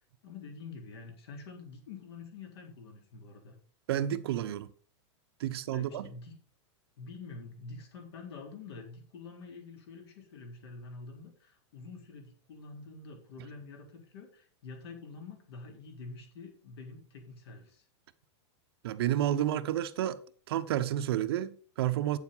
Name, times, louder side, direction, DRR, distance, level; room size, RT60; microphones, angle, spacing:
voice 1, 0.2-3.6 5.7-6.4 7.0-17.9, left 4 dB, 60° left, 3.9 m, -47 dB
voice 2, 3.9-4.7 5.4-6.0 18.8-20.2 20.5-22.2, right 12 dB, 55° right, 0.8 m, -30 dB
8.9 x 7.2 x 5.6 m
supercardioid pair, 175°, 15 cm